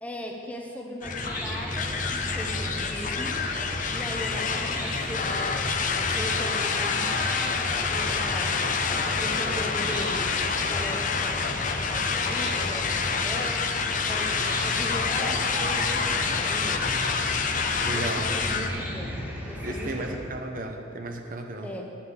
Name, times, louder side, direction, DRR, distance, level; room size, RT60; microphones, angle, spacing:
voice 1, 0.0-3.4 3.9-5.8 6.0-8.5 9.2-13.7 14.1-16.9 17.9-20.3 21.6-21.8, left 1 dB, 5° left, 0 dB, 1.0 m, -38 dB
sound 1, 1.0-18.7, left 5 dB, 40° left, 0.6 m, -28 dB
Chicken rooster / Cricket, 1.0-20.1, equal, 10° right, 1.8 m, -34 dB
voice 2, 17.8-18.3 19.6-21.7, right 1 dB, 45° right, 4 dB, 0.9 m, -34 dB
10.0 x 5.3 x 8.1 m, 2.5 s
head